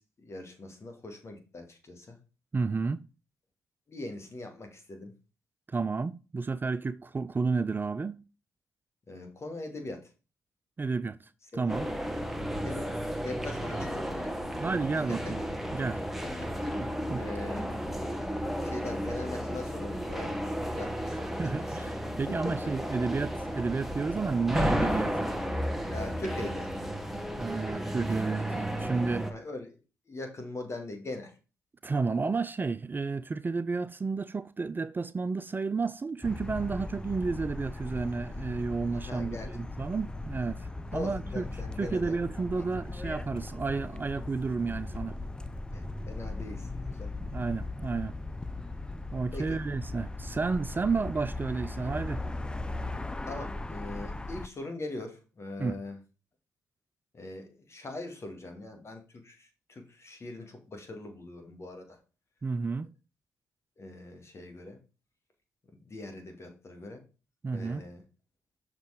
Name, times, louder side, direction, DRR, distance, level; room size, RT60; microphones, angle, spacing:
voice 1, 0.0-2.2 3.9-5.1 9.1-10.0 11.5-11.7 12.6-14.4 15.1-15.3 16.2-17.7 18.1-18.2 18.6-21.4 21.7-21.9 22.4-22.5 25.9-26.7 29.2-29.8 30.1-31.3 38.9-39.5 40.9-42.2 42.6-42.7 45.7-47.1 49.3-49.6 53.3-56.0 57.1-62.0 63.8-64.8 65.8-67.0 67.4-68.0, left 2 dB, 40° left, 2.5 m, -41 dB
voice 2, 2.5-3.0 5.7-8.2 10.8-11.9 14.6-15.4 15.7-16.0 17.1-17.2 21.4-25.3 27.4-29.3 31.8-41.5 41.8-45.2 47.3-48.2 49.1-52.2 55.6-55.8 62.4-62.9 67.4-67.8, right 4 dB, 30° right, 0.4 m, -31 dB
sound 1, 11.7-29.3, equal, 5° right, 1.5 m, -33 dB
sound 2, 36.2-54.5, left 2 dB, 15° left, 0.6 m, -38 dB
6.5 x 4.7 x 5.1 m
hypercardioid pair, 45°, 7 cm